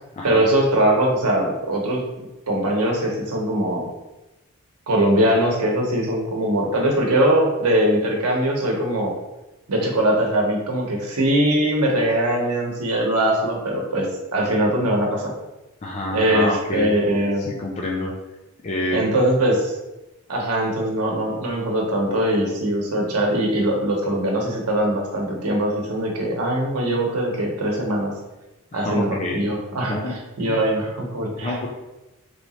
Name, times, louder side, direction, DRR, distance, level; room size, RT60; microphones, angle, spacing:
voice 1, 0.2-2.0 2.5-3.9 4.9-9.1 9.7-15.3 16.1-17.5 18.9-19.7 20.3-28.1 28.7-31.7, right 1 dB, 90° right, 0 dB, 0.9 m, -21 dB
voice 2, 15.8-18.1 18.6-19.0 28.7-29.4 29.9-30.1 30.4-30.6 31.4-31.7, left 1 dB, 30° left, -2 dB, 0.4 m, -28 dB
3.1 x 2.9 x 4.2 m, 1.0 s
head